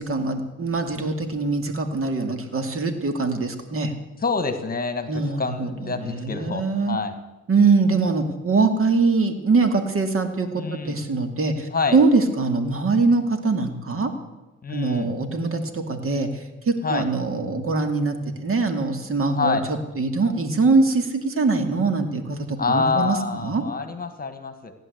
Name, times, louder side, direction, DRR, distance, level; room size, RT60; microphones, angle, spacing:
voice 1, 0.0-3.9 5.1-7.0 7.5-14.1 14.7-23.6, right 3 dB, 45° right, 7 dB, 2.4 m, -23 dB
voice 2, 4.2-7.2 10.5-11.0 11.7-12.0 14.6-15.1 16.8-17.1 19.4-19.6 22.6-24.7, left 4 dB, 30° left, 9 dB, 1.8 m, -26 dB
16.0 x 11.0 x 8.1 m, 1.0 s
cardioid pair, 90°, 30 cm